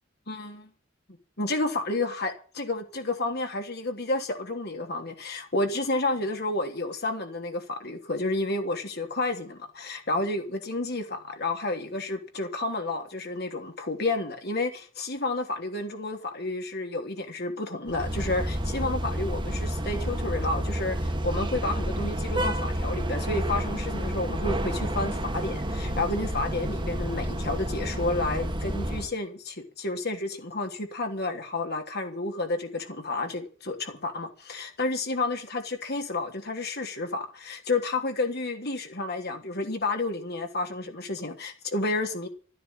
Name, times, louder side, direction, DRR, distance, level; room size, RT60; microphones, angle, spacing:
voice 1, 0.3-0.7 1.4-42.3, left 2 dB, 55° left, 3.1 m, -31 dB
sound 1, 17.9-29.1, equal, 25° right, 1.9 m, -30 dB
13.5 x 9.8 x 8.8 m
head